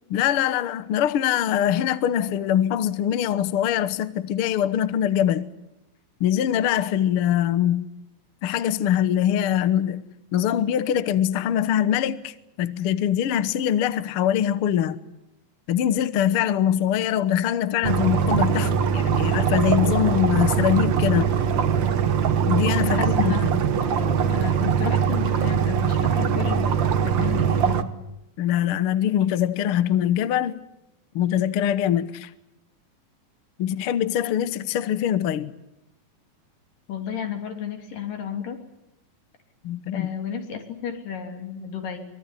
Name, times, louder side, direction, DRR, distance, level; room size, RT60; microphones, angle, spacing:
voice 1, 0.1-5.5 6.2-7.8 8.4-10.0 10.3-15.0 15.7-21.3 22.5-23.3 28.4-30.6 31.1-32.3 33.6-35.5 39.6-40.1, left 10 dB, 80° left, 1.2 m, -23 dB
sound 1, 17.8-27.8, right 7 dB, 75° right, 1.0 m, -22 dB
voice 2, 22.9-23.5 23.8-27.9 36.9-38.6 39.9-42.0, left 8 dB, 65° left, 4.7 m, -32 dB
24.0 x 23.0 x 9.9 m
omnidirectional pair, 4.2 m